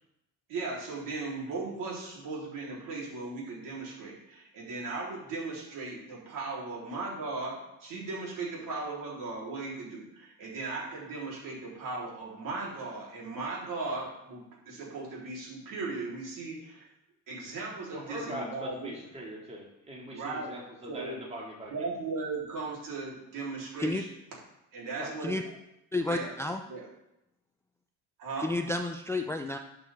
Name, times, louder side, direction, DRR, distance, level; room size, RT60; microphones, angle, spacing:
voice 1, 0.5-16.9 17.3-18.9 20.1-20.6 20.9-21.2 21.7-24.1 24.7-25.4 26.1-26.3 26.7-26.9 28.2-28.5, right 3 dB, 65° right, -4 dB, 3.8 m, -37 dB
voice 2, 17.9-21.9 25.0-25.2, right 1 dB, 20° right, -2 dB, 2.3 m, -41 dB
voice 3, 25.9-26.6 28.4-29.6, left 2 dB, 10° left, 5 dB, 0.4 m, -31 dB
11.0 x 6.3 x 3.6 m, 0.86 s
cardioid pair, 110°, 35 cm